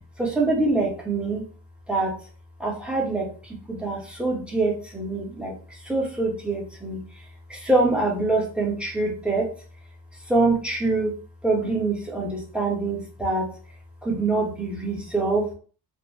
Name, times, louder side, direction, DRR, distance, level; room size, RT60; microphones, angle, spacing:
voice 1, 0.2-1.4 1.9-2.1 2.6-3.3 3.7-5.5 5.9-7.0 7.5-9.5 10.3-11.1 11.4-13.5 14.0-15.5, right 2 dB, ahead, -3 dB, 1.3 m, -24 dB
3.3 x 2.5 x 3.2 m, 0.41 s
cardioid pair, 70°, 44 cm